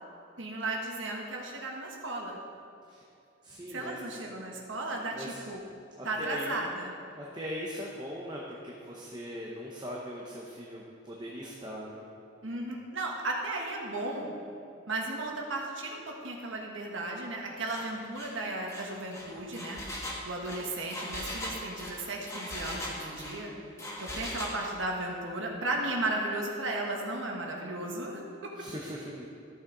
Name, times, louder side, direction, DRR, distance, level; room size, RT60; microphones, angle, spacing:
voice 1, 0.4-2.4 3.7-5.6 6.0-6.9 12.4-14.3 14.9-19.8 20.2-23.5 24.0-28.5, right 2 dB, 70° right, 0 dB, 1.4 m, -35 dB
voice 2, 3.4-4.2 5.1-5.5 6.0-6.6 7.2-12.0 28.6-29.3, equal, 20° right, -3 dB, 0.8 m, -40 dB
Engine, 17.7-17.9 18.2-18.3 18.7-23.4 23.8-24.6, left 1 dB, 15° left, 1.2 m, -39 dB
14.0 x 6.4 x 3.9 m, 2.7 s
head